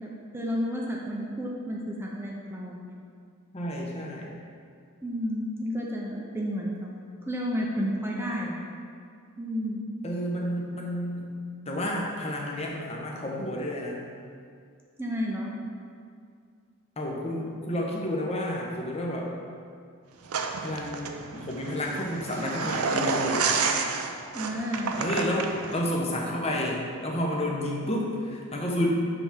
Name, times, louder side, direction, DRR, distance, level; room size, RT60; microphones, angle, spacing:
voice 1, 0.0-3.0 5.0-6.9 7.3-8.7 9.4-9.8 15.0-15.5 24.3-24.9, equal, 10° right, -3 dB, 0.6 m, -31 dB
voice 2, 3.5-4.3 10.0-11.3 11.7-14.0 17.0-19.3 20.6-23.6 25.0-28.9, left 1 dB, 30° left, -1 dB, 0.9 m, -30 dB
sound 1, 20.3-25.8, right 5 dB, 85° right, 0.5 m, -30 dB
6.9 x 3.5 x 5.7 m, 2.2 s
head